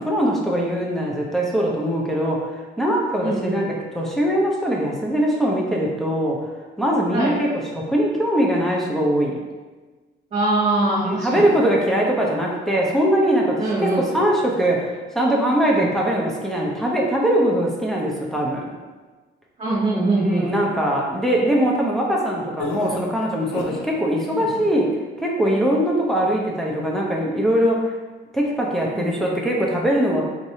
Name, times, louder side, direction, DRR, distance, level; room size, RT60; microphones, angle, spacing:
voice 1, 0.0-2.5 2.8-6.4 6.8-7.5 7.7-9.4 11.0-18.7 20.2-24.9 25.2-27.9 28.3-30.2, equal, ahead, -3 dB, 0.8 m, -21 dB
voice 2, 3.2-3.6 7.1-7.3 10.3-11.5 13.6-14.0 15.7-15.9 19.6-20.5 28.9-29.0, right 2 dB, 40° right, -10 dB, 1.4 m, -22 dB
sound 1, 22.6-23.9 24.3-24.7, left 4 dB, 75° left, 0.6 m, -32 dB
4.2 x 3.3 x 2.8 m, 1.3 s
cardioid pair, 90°, 20 cm